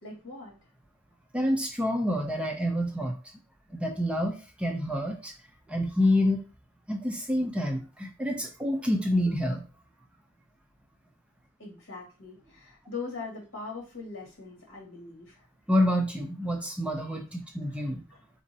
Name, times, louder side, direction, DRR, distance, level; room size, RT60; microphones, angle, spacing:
voice 1, 0.0-0.5 11.6-15.5 17.7-17.8 18.1-18.2, left 4 dB, 65° left, -2 dB, 2.0 m, -41 dB
voice 2, 1.3-3.2 3.7-5.3 5.7-6.4 6.9-9.6 15.7-18.0, left 1 dB, 5° right, 2 dB, 0.4 m, -27 dB
4.1 x 3.6 x 2.7 m, 0.33 s
head